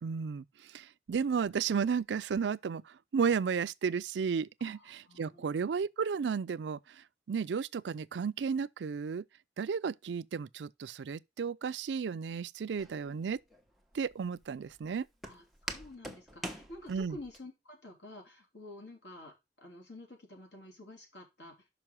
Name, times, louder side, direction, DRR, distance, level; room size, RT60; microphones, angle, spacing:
voice 1, 0.0-9.2 9.6-13.4 13.9-15.1 16.9-17.2, right 6 dB, 80° right, 0.4 m, -33 dB
voice 2, 4.6-5.5 15.2-21.5, left 1 dB, 80° left, 3.2 m, -50 dB
Walk footsteps, 12.8-17.4, right 1 dB, ahead, 1.1 m, -45 dB
6.1 x 5.4 x 5.9 m
head